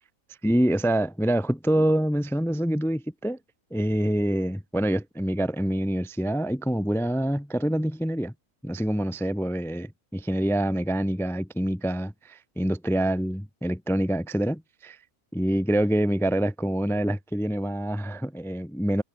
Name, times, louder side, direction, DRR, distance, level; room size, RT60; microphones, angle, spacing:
voice 1, 0.4-3.4 3.7-8.3 8.6-15.0 15.3-19.0, right 1 dB, ahead, 0.7 m, -26 dB
omnidirectional pair, 1.6 m